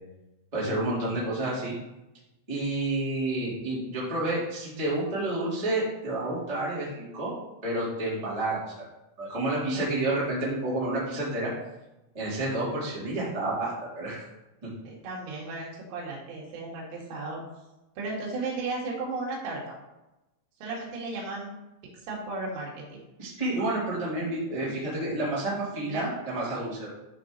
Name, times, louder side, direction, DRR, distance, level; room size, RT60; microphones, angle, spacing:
voice 1, 0.5-1.7 2.5-7.3 7.6-8.6 9.2-11.5 12.1-14.2 14.6-14.7 23.2-26.9, right 2 dB, 10° right, -8 dB, 1.8 m, -29 dB
voice 2, 14.8-17.4 18.0-19.8 20.6-21.6 22.0-23.0 24.6-24.7 25.9-26.1, right 3 dB, 90° right, -3 dB, 4.5 m, -35 dB
11.5 x 4.1 x 3.9 m, 0.98 s
omnidirectional pair, 5.6 m